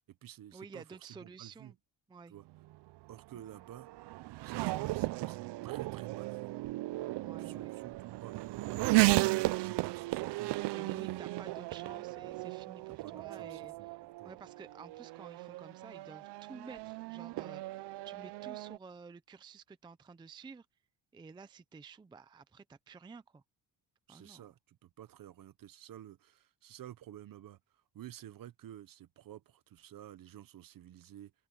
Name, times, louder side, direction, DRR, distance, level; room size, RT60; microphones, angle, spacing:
voice 1, 0.0-1.7 2.3-2.4 3.1-3.9 4.4-6.5 7.4-10.6 10.9-11.5 12.9-14.3 24.1-27.6 27.9-31.3, right 12 dB, 50° right, 1.0 m, -52 dB
voice 2, 0.5-1.8 2.1-2.3 3.3-3.4 7.2-7.7 10.7-14.0 14.2-20.7 21.1-23.4 24.1-24.5, right 5 dB, 10° right, 0.4 m, -52 dB
Race car auto racing / Accelerating revving vroom, 2.5-18.8, right 20 dB, 65° right, 0.5 m, -35 dB
open air
cardioid pair, 170°, 44 cm